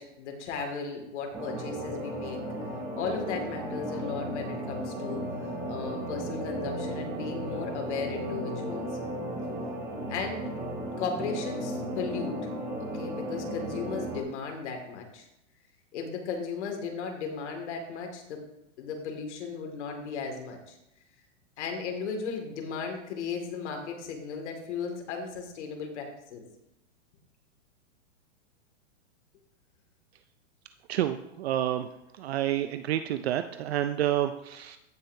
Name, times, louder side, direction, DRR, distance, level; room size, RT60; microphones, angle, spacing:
voice 1, 0.0-2.4 3.0-5.3 5.7-8.9 10.1-10.5 11.0-12.3 12.8-15.3 15.9-18.4 18.8-20.8 21.6-26.4, left 5 dB, 65° left, 3 dB, 2.2 m, -36 dB
sound 1, 1.3-14.2, right 1 dB, 20° right, 2.4 m, -35 dB
voice 2, 30.9-31.9 32.2-34.8, right 12 dB, 55° right, 9 dB, 0.5 m, -29 dB
16.0 x 5.6 x 2.7 m, 0.85 s
supercardioid pair, 165°, 38 cm